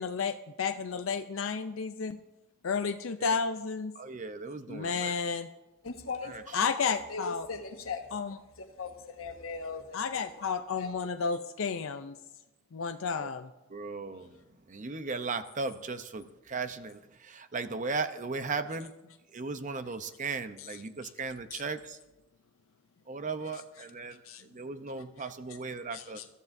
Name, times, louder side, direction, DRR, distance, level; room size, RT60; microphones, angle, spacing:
voice 1, 0.0-2.2 2.6-3.9 4.7-5.5 6.5-7.5 8.1-8.4 9.9-12.2 12.7-13.5 21.5-21.6 24.3-24.4 25.9-26.2, left 5 dB, 70° left, 8 dB, 0.5 m, -32 dB
voice 2, 4.0-5.1 6.2-6.6 13.2-13.3 13.7-14.4 14.7-18.9 19.3-22.0 23.1-26.2, right 4 dB, 40° right, 10 dB, 0.7 m, -37 dB
voice 3, 5.8-8.0 8.6-10.5 10.7-10.9, left 4 dB, 90° left, 4 dB, 1.5 m, -39 dB
22.0 x 13.5 x 2.7 m, 1.0 s
head